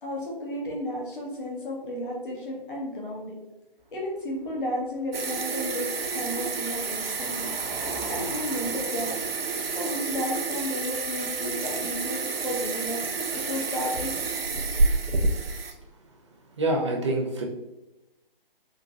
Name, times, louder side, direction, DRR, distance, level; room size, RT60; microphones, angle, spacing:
voice 1, 0.0-3.4 3.9-5.9 6.1-7.6 8.1-9.1 9.7-13.0 13.5-14.1, left 1 dB, 60° left, -2 dB, 1.3 m, -33 dB
Car passing by, 3.8-12.1, right 1 dB, 55° right, 0.8 m, -45 dB
sound 1, 5.1-15.7, right 3 dB, 80° right, 0.5 m, -29 dB
voice 2, 16.6-17.4, right 2 dB, 30° right, 0 dB, 0.5 m, -26 dB
3.7 x 2.8 x 2.4 m, 0.98 s
figure-of-eight pair, 145°, 29 cm